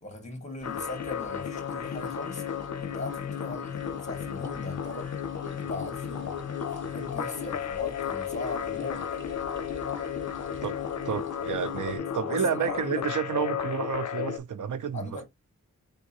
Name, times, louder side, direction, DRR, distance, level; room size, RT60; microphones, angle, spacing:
voice 1, 0.0-2.4 2.8-5.1 5.5-6.3 6.8-9.0 12.1-13.0 14.9-15.2, left 1 dB, 25° left, 1.8 m, -39 dB
sound 1, 0.6-14.4, left 8 dB, 65° left, 0.6 m, -33 dB
sound 2, 0.6-12.0, right 1 dB, 40° right, 1.3 m, -51 dB
voice 2, 11.0-15.2, right 7 dB, 85° right, 0.6 m, -30 dB
4.1 x 3.7 x 2.9 m
wide cardioid pair, 65°, 30 cm